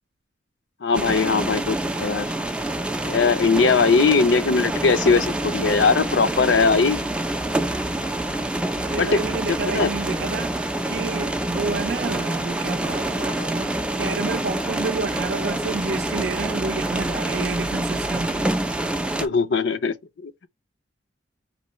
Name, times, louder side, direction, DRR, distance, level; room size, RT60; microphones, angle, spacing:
voice 1, 0.8-2.3 3.0-7.0 9.0-9.2 9.7-9.9 19.2-19.9 20.2-20.5, left 4 dB, 70° left, 0.5 m, -20 dB
sound 1, 0.9-19.3, right 1 dB, 5° right, 0.4 m, -26 dB
voice 2, 8.7-18.5, right 4 dB, 65° right, 0.5 m, -30 dB
4.5 x 3.1 x 3.0 m
head